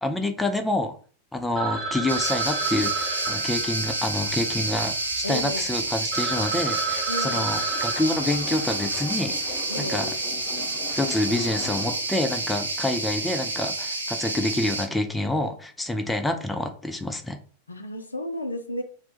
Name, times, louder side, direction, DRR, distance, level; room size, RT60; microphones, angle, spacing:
voice 1, 0.0-0.9 1.3-10.1 10.9-17.4, left 1 dB, 5° left, 0.3 m, -27 dB
Telephone, 1.6-5.3 5.8-5.9 6.1-9.0, right 4 dB, 30° right, 0.9 m, -32 dB
sound 1, 2.1-14.9, right 2 dB, 80° right, 0.4 m, -29 dB
voice 2, 5.2-5.7 7.1-7.5 9.7-10.1 17.7-18.8, left 1 dB, 75° left, 0.4 m, -32 dB
sound 2, 7.6-12.1, left 4 dB, 30° left, 0.7 m, -39 dB
2.4 x 2.1 x 2.8 m
figure-of-eight pair, 90°, 0 cm